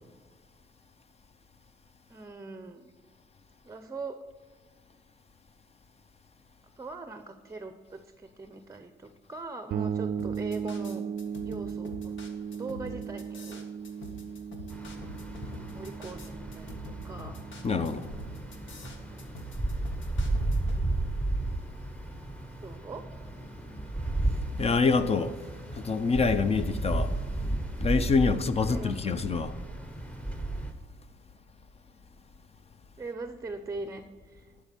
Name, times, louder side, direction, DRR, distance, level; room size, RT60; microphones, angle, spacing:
voice 1, 2.1-2.9 3.6-4.2 6.8-11.0 11.4-12.2 12.5-13.7 15.7-17.4 22.6-23.0 28.3-29.2 33.0-34.5, right 3 dB, 15° right, 0.6 m, -41 dB
sound 1, 9.7-19.3, right 7 dB, 55° right, 0.4 m, -37 dB
sound 2, 10.2-20.9, left 1 dB, 80° left, 1.6 m, -45 dB
sound 3, 14.7-30.7, right 2 dB, 5° left, 1.0 m, -33 dB
voice 2, 17.6-18.1 24.6-25.4 25.7-27.1 27.5-29.5, left 4 dB, 30° left, 0.6 m, -26 dB
11.5 x 4.6 x 6.7 m
cardioid pair, 100°, 19 cm